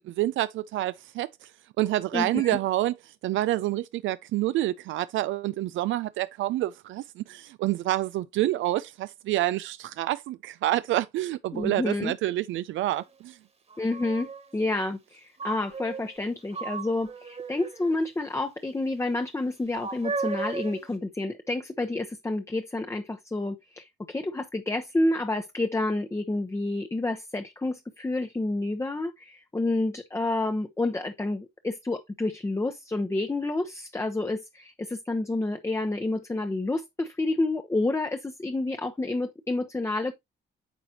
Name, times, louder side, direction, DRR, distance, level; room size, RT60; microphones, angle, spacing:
voice 1, 0.0-1.5 1.8-2.9 3.2-13.4, right 15 dB, 75° right, 0.4 m, -28 dB
voice 2, 2.1-2.6 11.5-12.2 13.8-40.1, left 2 dB, 15° left, 0.8 m, -29 dB
sound 1, 12.9-13.0 13.7-14.5 15.4-16.2 16.5-17.9 19.7-20.9, right 4 dB, 30° right, 1.5 m, -35 dB
9.1 x 4.8 x 2.8 m
cardioid pair, 90°, 20 cm